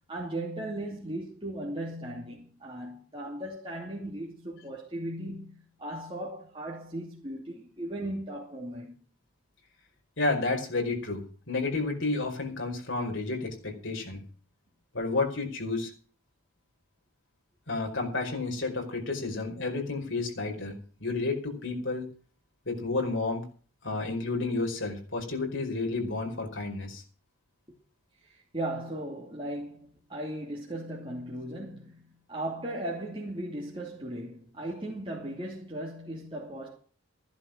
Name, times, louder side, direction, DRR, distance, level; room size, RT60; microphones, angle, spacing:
voice 1, 0.1-9.0 28.2-36.8, right 1 dB, 25° right, 2.7 m, -37 dB
voice 2, 10.2-11.2 11.5-14.2 14.9-15.9 17.7-22.1 22.6-23.5 23.8-27.0, left 3 dB, 60° left, 5.1 m, -31 dB
15.0 x 11.5 x 6.1 m
head